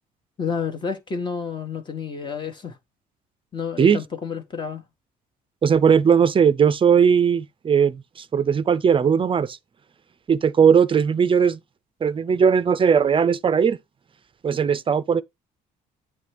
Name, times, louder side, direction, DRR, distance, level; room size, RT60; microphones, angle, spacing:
voice 1, 0.4-2.8 3.5-4.8, left 6 dB, 30° left, 1.2 m, -30 dB
voice 2, 5.6-9.6 10.3-11.6 12.0-13.8 14.4-15.2, right 7 dB, 30° right, 0.5 m, -18 dB
8.6 x 3.3 x 4.9 m
cardioid pair, 110°, 17 cm